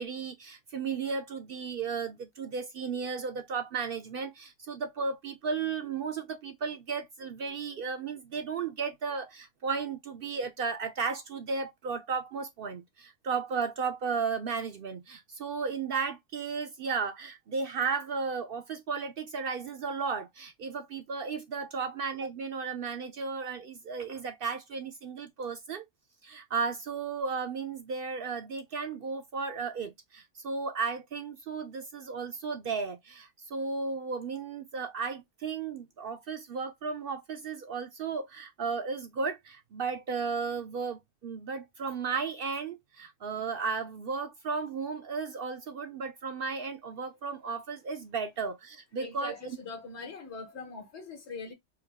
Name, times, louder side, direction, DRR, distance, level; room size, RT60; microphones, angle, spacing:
voice 1, 0.0-25.9 26.2-49.3, right 5 dB, 60° right, 0.6 m, -34 dB
voice 2, 49.0-51.5, left 4 dB, 65° left, 1.5 m, -42 dB
4.6 x 2.2 x 3.4 m
omnidirectional pair, 1.2 m